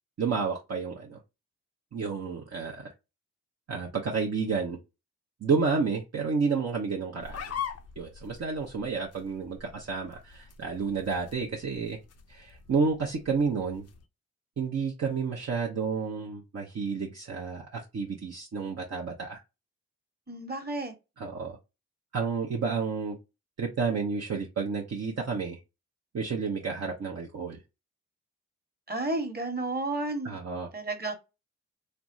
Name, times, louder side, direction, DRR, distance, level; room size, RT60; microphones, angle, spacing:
voice 1, 0.2-1.2 1.9-2.9 3.7-4.8 5.4-7.4 8.0-12.0 12.3-13.9 14.6-19.4 21.2-21.6 22.1-23.2 23.6-25.6 26.1-27.6 30.2-30.7, right 5 dB, 50° right, 0.8 m, -30 dB
sound 1, 7.2-14.0, left 8 dB, 50° left, 0.5 m, -43 dB
voice 2, 20.3-20.9 28.9-30.3 30.7-31.1, right 2 dB, 30° right, 1.3 m, -32 dB
3.4 x 2.0 x 2.6 m
supercardioid pair, 40°, 33 cm